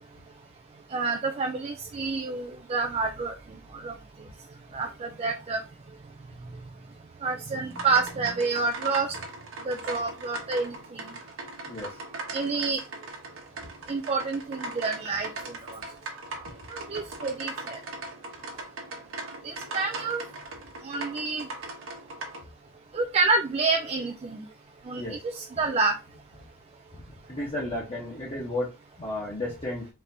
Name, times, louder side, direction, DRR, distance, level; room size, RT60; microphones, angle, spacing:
voice 1, 0.9-3.3 3.7-3.9 4.7-5.6 7.2-9.1 9.7-11.0 12.3-12.8 13.9-15.3 16.7-17.8 19.4-20.2 20.8-21.5 22.9-24.4 24.9-25.9, right 4 dB, 30° right, 4 dB, 0.3 m, -28 dB
sound 1, 7.7-22.4, right 2 dB, 75° right, 1.0 m, -39 dB
voice 2, 27.3-28.7 29.0-29.9, left 1 dB, 30° left, -5 dB, 1.0 m, -32 dB
4.2 x 3.2 x 2.6 m, 0.27 s
head